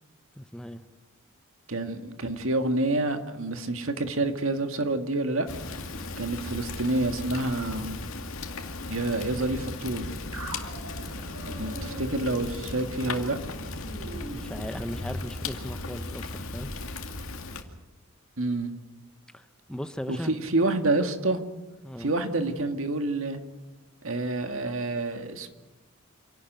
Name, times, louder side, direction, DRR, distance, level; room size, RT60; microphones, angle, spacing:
voice 1, 0.4-0.8 14.3-16.8 19.3-20.3 21.8-22.1, equal, 5° left, 9 dB, 0.7 m, -37 dB
voice 2, 1.7-5.5 6.2-8.0 8.9-10.1 11.6-13.4 18.4-18.7 20.1-21.4 22.0-23.4 24.0-25.5, right 2 dB, 65° right, 7 dB, 1.9 m, -28 dB
Fire, 5.5-17.6, left 2 dB, 70° left, 2.3 m, -37 dB
sound 1, 10.3-15.2, right 1 dB, 85° right, 5.3 m, -41 dB
27.5 x 12.0 x 9.3 m, 1.2 s
head